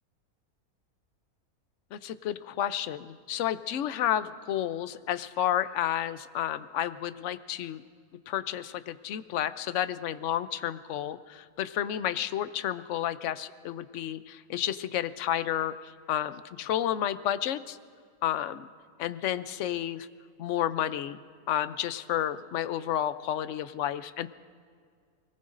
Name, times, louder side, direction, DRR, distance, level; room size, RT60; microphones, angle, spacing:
voice 1, 1.9-7.8 8.3-15.7 16.1-17.8 18.2-18.7 19.0-20.1 20.4-21.2 21.5-24.3, left 11 dB, 65° left, 13 dB, 0.8 m, -31 dB
28.0 x 18.5 x 2.6 m, 2.1 s
omnidirectional pair, 1.6 m